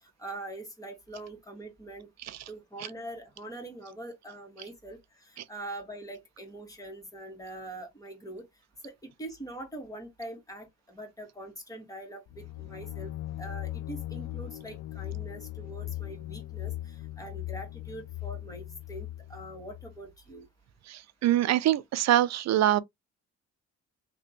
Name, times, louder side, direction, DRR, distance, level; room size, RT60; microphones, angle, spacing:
voice 1, 0.0-2.1 2.5-8.4 8.8-13.1 13.4-20.5, right 1 dB, 10° left, 1.8 m, -43 dB
sound 1, 12.3-20.0, left 15 dB, 75° left, 0.5 m, -39 dB
voice 2, 20.9-22.8, right 12 dB, 60° right, 0.5 m, -24 dB
3.3 x 2.9 x 2.8 m
cardioid pair, 90°, 30 cm